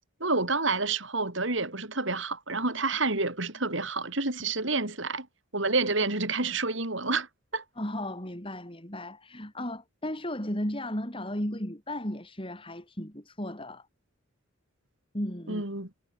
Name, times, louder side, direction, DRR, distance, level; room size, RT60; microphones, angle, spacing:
voice 1, 0.2-5.3 5.5-7.3 7.5-7.6 15.5-15.9, right 3 dB, 65° right, 5.0 m, -29 dB
voice 2, 7.8-13.9 15.1-15.6, left 1 dB, 25° left, 4.6 m, -35 dB
head